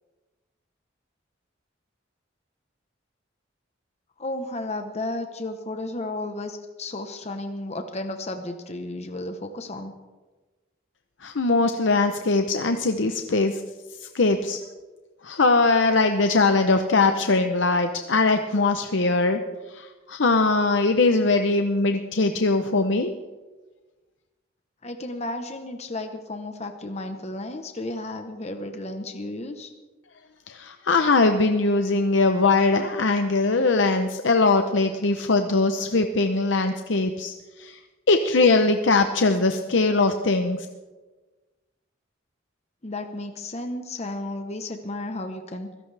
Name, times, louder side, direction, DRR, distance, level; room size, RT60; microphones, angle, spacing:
voice 1, 4.2-9.9 24.8-29.7 42.8-45.7, left 2 dB, 35° left, 6 dB, 1.0 m, -33 dB
voice 2, 11.2-13.6 14.0-14.6 15.2-19.4 19.7-23.1 30.5-37.8 38.1-40.7, left 3 dB, 65° left, 6 dB, 0.8 m, -21 dB
23.0 x 16.5 x 3.4 m, 1.2 s
head